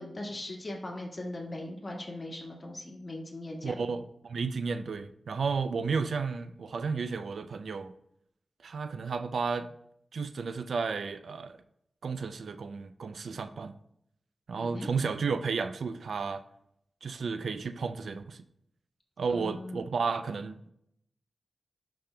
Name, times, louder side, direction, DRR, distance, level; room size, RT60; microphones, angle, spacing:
voice 1, 0.0-3.8 14.6-14.9 19.3-19.9, left 1 dB, 35° left, -1 dB, 1.7 m, -39 dB
voice 2, 3.6-7.9 8.6-9.7 10.1-11.6 12.0-13.7 14.5-16.4 17.0-18.4 19.2-20.6, right 5 dB, 75° right, 11 dB, 0.4 m, -32 dB
11.0 x 5.2 x 2.2 m, 0.74 s
wide cardioid pair, 75°, 0 cm